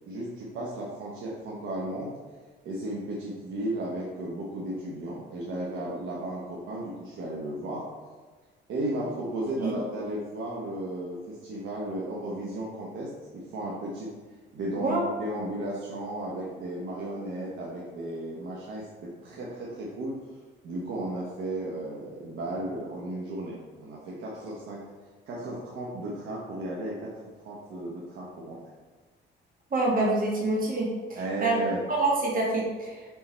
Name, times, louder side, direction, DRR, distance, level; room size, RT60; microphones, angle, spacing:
voice 1, 0.1-2.1 2.6-7.9 8.7-14.1 14.5-20.2 20.6-24.8 25.3-28.6 31.2-31.8, right 1 dB, 80° right, -5 dB, 1.1 m, -34 dB
voice 2, 29.7-31.5 31.9-33.1, right 2 dB, 45° right, -2 dB, 2.0 m, -26 dB
7.1 x 3.7 x 4.4 m, 1.4 s
cardioid pair, 90°, 20 cm